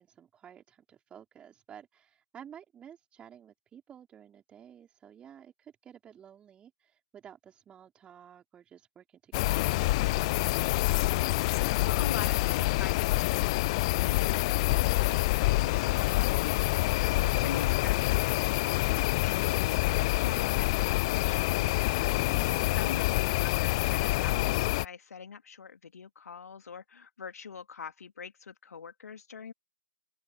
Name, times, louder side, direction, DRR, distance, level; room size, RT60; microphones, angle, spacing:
voice 1, 0.0-10.6 22.1-22.8, right 9 dB, 10° right, 3.8 m, -52 dB
sound 1, 9.3-24.8, left 21 dB, 20° left, 0.4 m, -27 dB
voice 2, 11.5-21.7 22.4-29.5, left 6 dB, 50° left, 2.5 m, -44 dB
open air
figure-of-eight pair, 135°, 10 cm